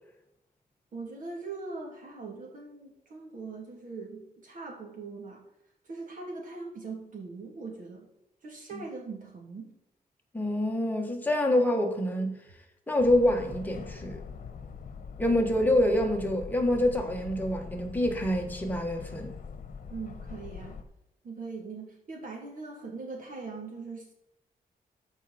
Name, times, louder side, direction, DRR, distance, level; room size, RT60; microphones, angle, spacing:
voice 1, 0.9-5.4 5.8-8.1 8.4-9.7 19.9-20.8 21.2-24.1, right 4 dB, 60° right, 2.9 m, -41 dB
voice 2, 10.3-12.3 12.9-14.2 15.2-19.3, left 1 dB, 10° left, 1.4 m, -26 dB
sound 1, 13.0-20.8, left 6 dB, 55° left, 1.2 m, -43 dB
13.5 x 5.6 x 4.3 m
wide cardioid pair, 160°, 16 cm